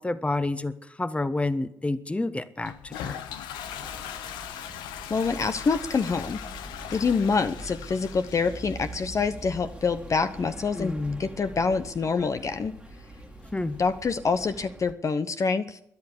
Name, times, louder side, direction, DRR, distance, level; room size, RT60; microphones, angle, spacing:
voice 1, 0.0-3.2 10.7-11.2 13.5-13.8, left 2 dB, 15° left, 13 dB, 1.2 m, -29 dB
Toilet flush, 2.6-14.2, left 9 dB, 90° left, 0.9 m, -42 dB
sound 1, 3.6-14.9, right 2 dB, 15° right, 1.8 m, -44 dB
voice 2, 5.1-6.4 6.9-10.9 11.2-12.7 13.8-15.8, left 5 dB, 45° left, 10 dB, 0.9 m, -26 dB
13.0 x 10.5 x 9.9 m, 0.74 s
supercardioid pair, 55°, 7 cm